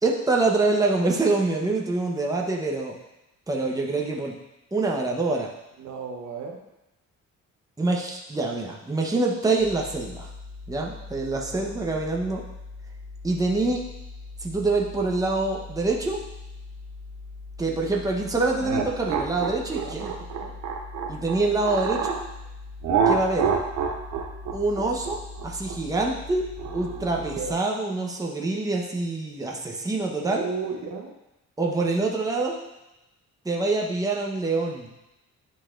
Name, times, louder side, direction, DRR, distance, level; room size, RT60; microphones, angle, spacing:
voice 1, 0.0-2.9 3.5-4.3 4.7-5.5 7.8-10.3 10.7-12.4 13.2-13.8 14.4-16.2 17.6-20.1 21.1-22.2 23.1-23.5 24.5-26.5 26.7-30.4 31.6-32.6 33.4-34.9, right 3 dB, 10° right, -1 dB, 1.0 m, -25 dB
voice 2, 5.8-6.6 11.6-11.7 19.8-20.1 20.4-20.5 27.3-27.5 30.2-31.1, right 5 dB, 65° right, 1 dB, 1.1 m, -34 dB
sound 1, 9.6-27.6, left 3 dB, 70° left, 1.8 m, -41 dB
sound 2, 18.6-22.2 22.8-27.3, right 6 dB, 85° right, 0.9 m, -27 dB
10.5 x 4.1 x 2.5 m, 0.94 s
cardioid pair, 90°, 30 cm